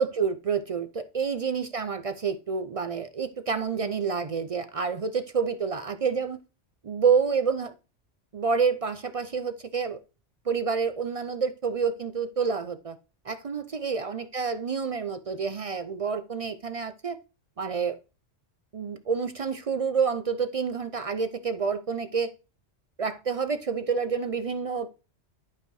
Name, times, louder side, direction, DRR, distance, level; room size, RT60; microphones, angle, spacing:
voice 1, 0.0-6.4 6.8-7.7 8.3-10.0 10.5-13.0 13.3-17.2 17.6-18.0 18.7-22.3 23.0-24.9, right 5 dB, 65° right, 0.3 m, -28 dB
11.5 x 5.4 x 4.6 m
omnidirectional pair, 1.3 m